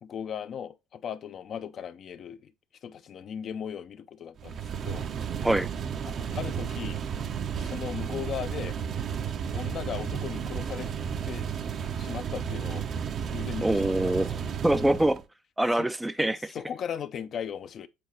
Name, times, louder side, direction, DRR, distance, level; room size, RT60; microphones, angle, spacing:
voice 1, 0.0-2.5 2.8-5.1 6.0-7.0 7.6-8.8 9.5-10.9 11.2-11.5 12.0-12.8 13.3-14.4 15.7-15.9 16.5-17.9, left 8 dB, 50° left, 0.6 m, -37 dB
sound 1, 4.4-15.2, right 7 dB, 45° right, 0.7 m, -33 dB
voice 2, 13.6-15.2 15.6-16.5, right 1 dB, 5° right, 0.5 m, -25 dB
7.7 x 4.0 x 3.1 m
hypercardioid pair, 75°, 0 cm